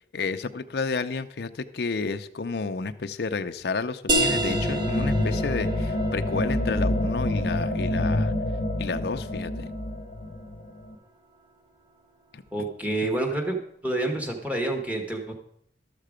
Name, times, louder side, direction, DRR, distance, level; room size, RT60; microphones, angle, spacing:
voice 1, 0.1-8.3 8.8-9.7 12.3-12.7 13.0-13.1, left 4 dB, 70° left, 8 dB, 0.5 m, -31 dB
sound 1, 4.1-9.4, right 1 dB, 25° right, 0.9 m, -31 dB
sound 2, 4.2-10.9, left 1 dB, 50° left, 0.9 m, -27 dB
voice 2, 12.5-13.6 13.8-15.3, right 2 dB, 10° right, 3 dB, 1.2 m, -28 dB
12.5 x 6.7 x 5.0 m, 0.70 s
head